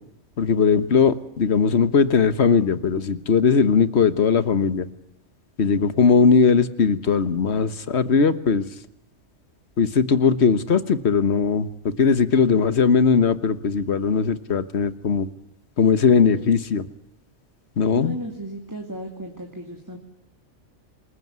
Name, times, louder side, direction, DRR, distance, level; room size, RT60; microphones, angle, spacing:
voice 1, 0.4-4.9 5.6-8.6 9.8-11.7 12.0-15.3 15.8-16.8 17.8-18.1, left 5 dB, 65° left, 14 dB, 1.5 m, -19 dB
voice 2, 17.9-20.0, right 1 dB, 15° right, 2 dB, 2.9 m, -35 dB
27.5 x 21.5 x 9.5 m, 0.75 s
omnidirectional pair, 1.2 m